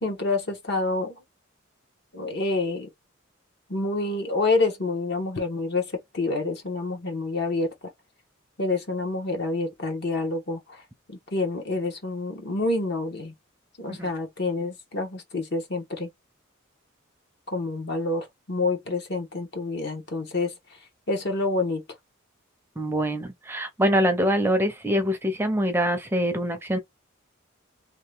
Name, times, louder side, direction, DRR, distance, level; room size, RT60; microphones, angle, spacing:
voice 1, 0.0-1.2 2.1-2.9 3.7-7.7 8.6-10.8 11.1-13.3 13.8-16.1 17.5-20.5 21.1-21.8, left 3 dB, 55° left, 1.1 m, -27 dB
voice 2, 22.8-26.8, equal, 10° right, 0.5 m, -24 dB
2.9 x 2.3 x 3.3 m
head